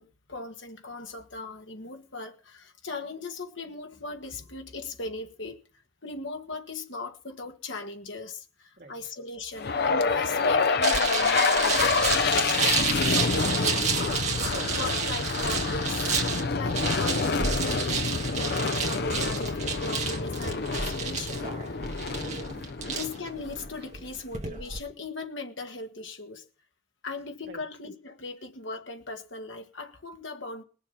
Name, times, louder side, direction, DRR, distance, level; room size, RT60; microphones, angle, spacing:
voice 1, 0.0-5.6 6.0-12.5 13.1-13.9 14.7-16.0 16.5-21.9 22.9-26.5 27.0-30.6, left 3 dB, 70° left, 2.0 m, -38 dB
voice 2, 8.8-9.1 12.5-13.4 14.3-14.8 23.8-24.0 27.4-27.6, right 3 dB, 50° right, 2.3 m, -49 dB
sound 1, 9.6-23.8, left 4 dB, 50° left, 0.6 m, -27 dB
sound 2, 10.8-24.8, right 5 dB, 35° right, 1.8 m, -31 dB
21.0 x 7.0 x 5.7 m
head